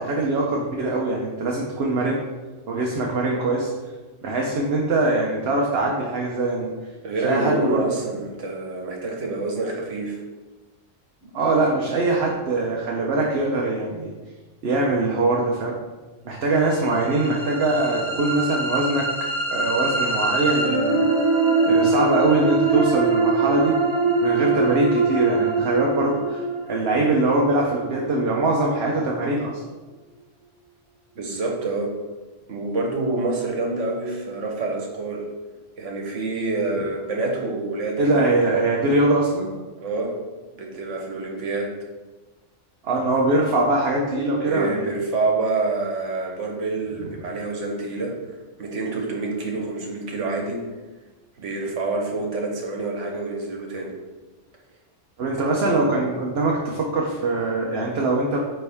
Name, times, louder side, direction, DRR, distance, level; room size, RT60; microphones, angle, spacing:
voice 1, 0.0-2.2 2.7-3.7 4.2-6.7 7.2-7.8 11.3-14.1 14.6-15.7 16.2-19.1 19.5-21.0 21.7-23.8 24.2-29.6 38.0-39.5 42.8-44.8 55.2-58.4, right 2 dB, 60° right, -1 dB, 1.0 m, -22 dB
voice 2, 7.0-10.2 31.1-31.9 32.5-35.3 35.8-38.2 39.8-40.2 40.5-41.7 44.4-48.1 48.6-50.6 51.4-53.9 55.4-55.8, right 3 dB, 75° right, 0 dB, 1.5 m, -27 dB
sound 1, 16.8-28.8, right 3 dB, 25° right, 0.9 m, -23 dB
9.5 x 3.5 x 3.5 m, 1.2 s
omnidirectional pair, 1.3 m